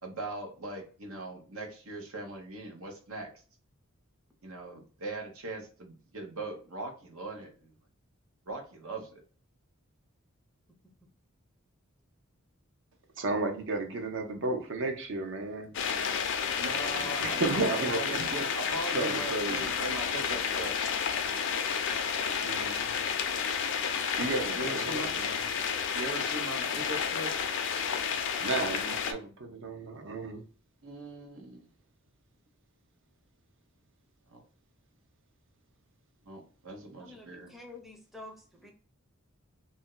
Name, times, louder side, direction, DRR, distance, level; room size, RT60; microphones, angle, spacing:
voice 1, 0.0-3.3 4.4-7.7 8.5-9.2 16.6-20.7 24.6-25.1 25.4-25.5 25.9-27.3 30.8-31.7 34.3-34.4 36.2-37.5, right 2 dB, 85° right, 2 dB, 1.0 m, -40 dB
voice 2, 13.2-15.7 16.9-18.3 18.9-19.7 22.4-22.9 24.2-25.4 28.4-30.4, right 3 dB, 60° right, 5 dB, 0.7 m, -33 dB
sound 1, 15.7-29.1, left 7 dB, 60° left, 0.4 m, -31 dB
voice 3, 37.0-38.7, left 2 dB, ahead, 1 dB, 0.5 m, -49 dB
2.6 x 2.1 x 3.7 m, 0.40 s
head